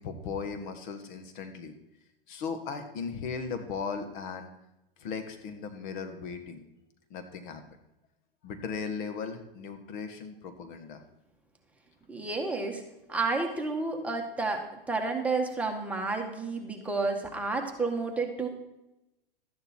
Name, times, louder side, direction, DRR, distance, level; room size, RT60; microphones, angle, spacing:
voice 1, 0.0-1.7 2.3-4.5 5.0-6.6 7.1-7.6 8.4-11.0, left 5 dB, 55° left, 7 dB, 1.6 m, -37 dB
voice 2, 12.1-12.8 13.1-18.5, right 3 dB, 5° right, 1 dB, 1.6 m, -31 dB
13.0 x 9.3 x 4.4 m, 0.91 s
hypercardioid pair, 115°, 29 cm